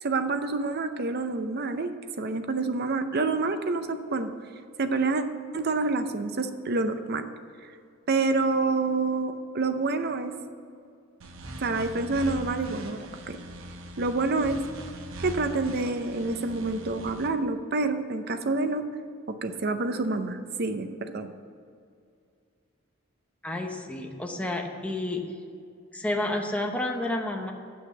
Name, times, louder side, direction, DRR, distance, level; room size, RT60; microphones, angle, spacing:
voice 1, 0.0-4.3 4.8-5.2 5.5-7.3 8.1-10.3 11.6-13.4 14.0-14.6 15.2-18.9 19.3-21.3, right 3 dB, 50° right, 8 dB, 0.6 m, -28 dB
sound 1, 11.2-17.3, right 1 dB, 85° right, 1.0 m, -41 dB
voice 2, 23.4-25.2 25.9-27.5, left 1 dB, 5° left, 1 dB, 0.9 m, -30 dB
7.9 x 6.3 x 7.9 m, 2.4 s
head